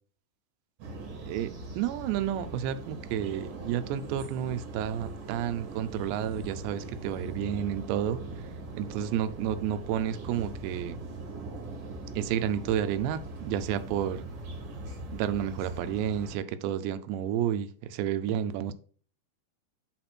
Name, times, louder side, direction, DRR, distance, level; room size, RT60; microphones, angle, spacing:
sound 1, 0.8-16.4, right 2 dB, 55° right, 3.1 m, -41 dB
voice 1, 1.3-8.2 8.7-11.0 12.2-14.3 15.1-18.7, right 10 dB, 85° right, 12 dB, 2.9 m, -31 dB
8.3 x 4.2 x 4.3 m, 0.43 s
omnidirectional pair, 5.0 m